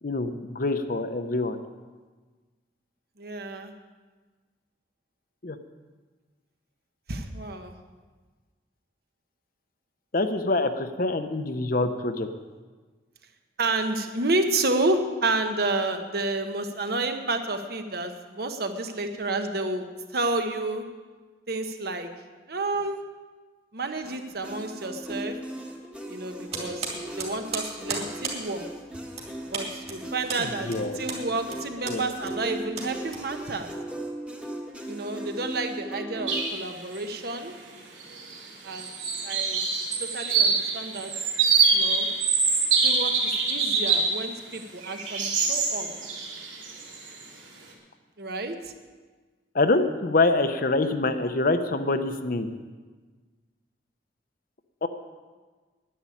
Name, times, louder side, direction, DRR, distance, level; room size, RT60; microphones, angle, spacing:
voice 1, 0.0-1.6 5.4-5.6 10.1-12.3 30.4-31.0 31.9-32.0 49.5-52.5 54.8-54.9, left 2 dB, 50° left, 9 dB, 0.8 m, -25 dB
voice 2, 3.2-3.7 7.1-7.8 13.6-19.9 20.1-20.8 21.5-22.1 22.5-23.0 23.7-25.4 26.1-26.9 27.2-28.6 29.5-33.7 34.9-37.5 38.6-38.9 39.2-39.6 40.1-41.1 41.7-42.1 42.8-45.9 48.2-48.7, right 2 dB, 55° right, 6 dB, 1.1 m, -30 dB
sound 1, 24.0-36.5, right 1 dB, 5° right, 1.3 m, -38 dB
sound 2, 26.5-33.7, right 4 dB, 35° right, 2.4 m, -36 dB
sound 3, 36.3-36.6 37.0-37.1 38.0-38.4 38.7-44.2 44.5-47.2, right 5 dB, 85° right, 2.8 m, -25 dB
10.0 x 8.6 x 9.8 m, 1.4 s
head